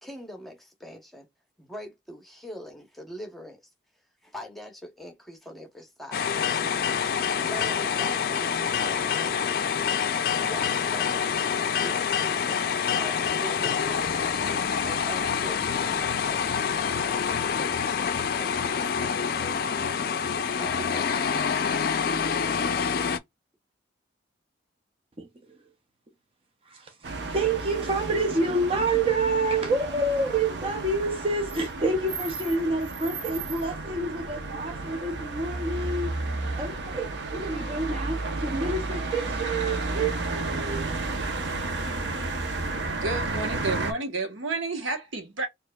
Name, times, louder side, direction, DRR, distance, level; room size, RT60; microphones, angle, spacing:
voice 1, 0.0-1.3 1.6-3.6 4.2-6.6 7.5-9.8 10.4-14.3 14.8-16.6 18.4-19.9 20.6-21.8, equal, ahead, 0.8 m, -43 dB
sound 1, 6.1-23.2, left 7 dB, 50° left, 0.4 m, -26 dB
voice 2, 26.7-36.2 36.6-40.9, right 2 dB, 30° right, 0.5 m, -28 dB
sound 2, 27.0-43.9, right 3 dB, 65° right, 0.7 m, -32 dB
voice 3, 42.9-45.5, right 3 dB, 90° right, 1.1 m, -31 dB
4.5 x 2.4 x 2.2 m
head